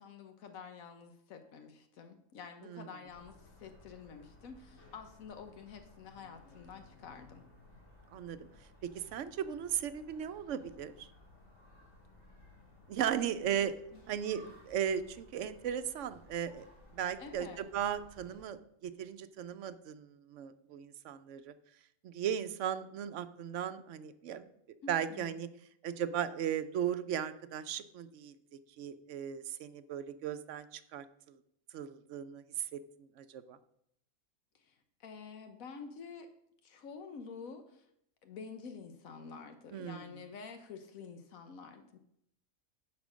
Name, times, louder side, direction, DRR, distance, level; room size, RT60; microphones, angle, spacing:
voice 1, 0.0-7.4 13.6-14.0 17.2-17.6 24.8-25.4 34.6-36.3 36.6-37.9 38.2-42.0, left 5 dB, 80° left, 7 dB, 1.2 m, -49 dB
sound 1, 3.1-18.4, left 2 dB, 55° left, 2.8 m, -59 dB
voice 2, 8.8-11.1 12.9-13.7 14.1-16.6 16.9-21.5 22.0-24.4 24.9-25.5 25.8-28.3 28.8-31.4 31.7-32.4 32.7-32.8 33.2-33.6 39.7-40.0, right 9 dB, 70° right, 12 dB, 0.9 m, -37 dB
10.5 x 4.4 x 6.2 m, 0.74 s
omnidirectional pair, 1.4 m